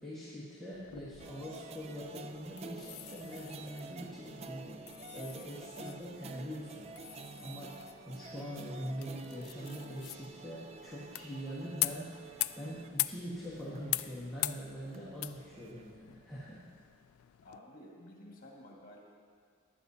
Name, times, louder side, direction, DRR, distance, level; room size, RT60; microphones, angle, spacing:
voice 1, 0.0-4.8 5.1-6.9 7.4-7.8 8.0-16.6, equal, ahead, -11 dB, 1.5 m, -43 dB
sound 1, 0.7-17.6, left 17 dB, 80° left, 0.3 m, -43 dB
sound 2, 1.2-15.9, right 3 dB, 30° right, 0.3 m, -50 dB
voice 2, 17.4-19.0, left 1 dB, 45° left, -2 dB, 1.8 m, -52 dB
15.0 x 11.0 x 2.8 m, 2.1 s
head